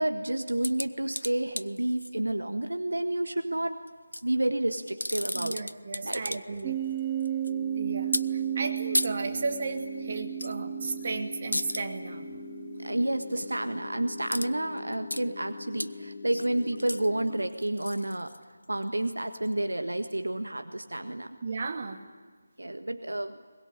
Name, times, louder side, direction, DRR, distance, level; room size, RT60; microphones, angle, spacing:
voice 1, 0.0-3.8 4.2-5.6 6.0-6.4 12.8-18.3 18.7-21.4 22.6-23.4, right 1 dB, 75° right, 7 dB, 1.6 m, -30 dB
sound 1, 0.6-2.1 3.9-4.2 4.8-6.6 6.9-7.5 8.1-8.2 8.9-9.1 10.4-10.5 10.9-11.1 11.5-11.8 14.3-14.5 14.8-15.2 15.8-15.9 16.3-18.8 19.4-19.5, left 1 dB, 85° left, 0.8 m, -33 dB
voice 2, 5.3-6.8 7.7-12.3 21.4-22.0, right 3 dB, 40° right, 4 dB, 2.5 m, -34 dB
sound 2, 6.6-13.7, right 11 dB, 15° right, 1.0 m, -34 dB
sound 3, 7.5-17.5, left 4 dB, 50° left, 3.4 m, -43 dB
23.5 x 21.5 x 9.9 m, 1.5 s
figure-of-eight pair, 160°, 0 cm